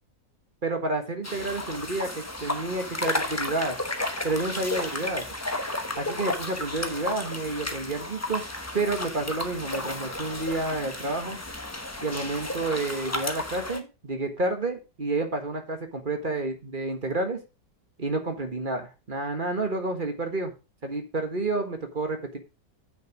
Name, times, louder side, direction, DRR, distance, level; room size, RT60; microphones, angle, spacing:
voice 1, 0.6-3.8 4.2-5.3 6.0-8.4 8.7-11.4 12.0-17.4 18.0-20.5 20.8-22.4, right 2 dB, 30° right, 5 dB, 1.5 m, -30 dB
sound 1, 1.2-13.8, left 1 dB, 15° left, 0.7 m, -33 dB
8.4 x 6.6 x 5.0 m, 0.29 s
omnidirectional pair, 1.9 m